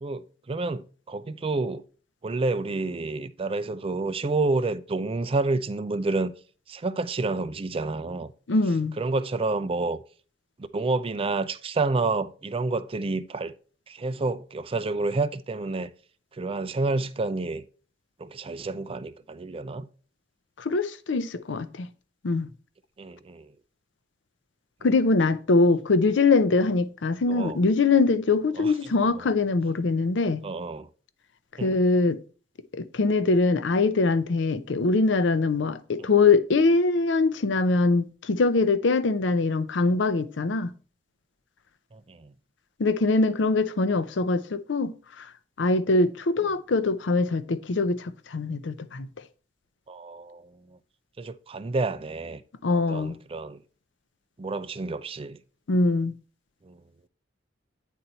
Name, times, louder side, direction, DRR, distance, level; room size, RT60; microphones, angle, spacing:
voice 1, 0.0-1.8 2.2-6.3 6.7-8.3 9.0-10.0 10.6-13.5 13.9-15.9 16.4-17.7 18.2-19.9 23.0-23.5 27.3-27.6 28.6-28.7 30.4-30.9 31.6-31.8 36.0-36.1 41.9-42.3 46.4-46.5 49.9-50.5 51.2-52.4 52.9-53.6 54.4-55.4 56.6-56.8, right 3 dB, 30° right, 0.4 m, -29 dB
voice 2, 8.5-8.9 20.6-21.9 22.2-22.5 24.8-30.4 31.6-32.2 32.7-40.7 42.8-45.2 45.6-49.1 52.6-53.2 55.7-56.2, left 3 dB, 75° left, 0.6 m, -23 dB
9.0 x 4.1 x 4.2 m
head